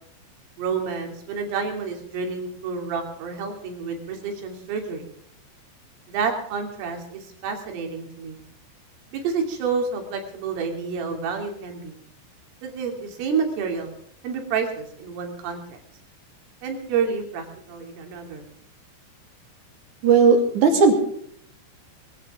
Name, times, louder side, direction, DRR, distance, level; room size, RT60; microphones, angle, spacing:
voice 1, 0.6-5.1 6.1-8.4 9.1-12.0 12.6-13.9 14.2-15.8 16.6-18.5, right 5 dB, 85° right, 2 dB, 5.5 m, -29 dB
voice 2, 20.0-20.9, right 5 dB, 45° right, 4 dB, 3.3 m, -16 dB
21.0 x 16.0 x 3.7 m, 0.64 s
omnidirectional pair, 5.7 m